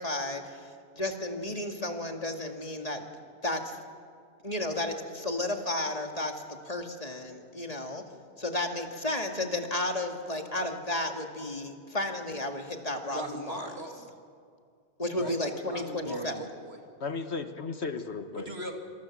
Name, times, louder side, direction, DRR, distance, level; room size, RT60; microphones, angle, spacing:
voice 1, 0.0-3.0 3.4-3.8 4.4-8.0 8.4-13.6 15.0-16.3, left 1 dB, 35° left, 3 dB, 2.3 m, -33 dB
voice 2, 13.1-14.1 15.1-16.8 18.3-18.8, right 1 dB, 60° right, 3 dB, 3.0 m, -40 dB
voice 3, 16.0-16.4 17.0-18.5, left 4 dB, 65° left, 8 dB, 1.7 m, -35 dB
27.0 x 26.5 x 7.5 m, 2.3 s
omnidirectional pair, 1.2 m